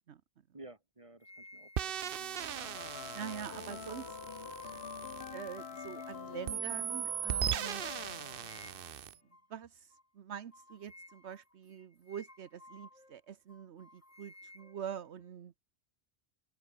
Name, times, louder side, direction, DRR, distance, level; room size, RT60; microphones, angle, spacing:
voice 1, 0.5-2.3 3.7-5.4, right 2 dB, 30° right, 3.1 m, -55 dB
sound 1, 1.2-6.3 6.8-7.0 7.5-7.7 8.2-9.1 9.3-9.5 9.9-10.1 10.5-13.2 13.5-15.3, left 1 dB, 30° left, 3.7 m, -58 dB
sound 2, 1.8-6.0 6.5-9.2, right 10 dB, 60° right, 0.8 m, -38 dB
sound 3, 2.0-9.0, left 6 dB, 60° left, 1.4 m, -46 dB
voice 2, 3.1-4.0 5.3-7.9 9.5-15.5, right 8 dB, 80° right, 1.2 m, -45 dB
open air
omnidirectional pair, 1.2 m